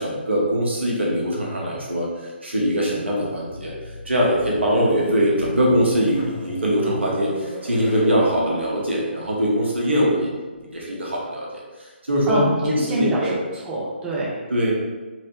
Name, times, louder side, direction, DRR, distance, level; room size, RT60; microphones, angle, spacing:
voice 1, 0.0-3.7 4.0-10.3 10.7-11.5 11.8-13.4 14.5-14.7, equal, 75° right, -3 dB, 0.9 m, -22 dB
sound 1, 3.5-11.2, left 1 dB, 65° left, 1.3 m, -37 dB
voice 2, 12.3-14.4, right 1 dB, 10° right, -6 dB, 0.4 m, -26 dB
3.1 x 2.0 x 3.0 m, 1.3 s
figure-of-eight pair, 140°, 6 cm